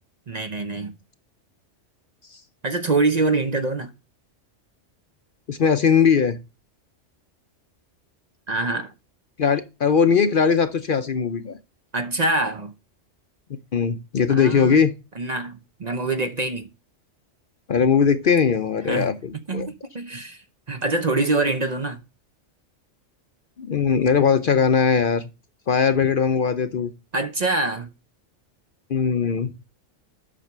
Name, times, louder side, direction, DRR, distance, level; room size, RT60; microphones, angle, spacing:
voice 1, 0.3-1.0 2.6-3.9 8.5-8.9 11.9-12.7 14.3-14.8 15.2-16.7 18.9-22.0 27.1-27.9, right 3 dB, 40° right, 0.8 m, -25 dB
voice 2, 5.5-6.4 9.4-11.6 13.7-14.9 17.7-19.7 23.6-25.3 25.7-26.9 28.9-29.5, left 6 dB, 50° left, 0.7 m, -20 dB
7.5 x 6.2 x 6.6 m
omnidirectional pair, 1.3 m